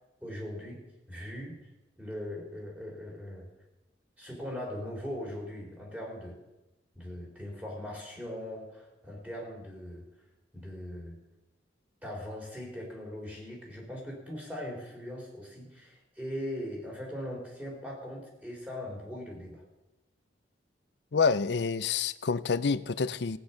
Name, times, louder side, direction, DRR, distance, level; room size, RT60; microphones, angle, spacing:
voice 1, 0.2-0.8 1.1-1.6 2.0-3.5 4.2-6.4 7.0-10.1 10.5-11.2 12.0-19.6, left 1 dB, 10° right, 4.0 m, -40 dB
voice 2, 21.1-23.4, left 5 dB, 65° left, 0.6 m, -27 dB
16.5 x 9.3 x 5.7 m
head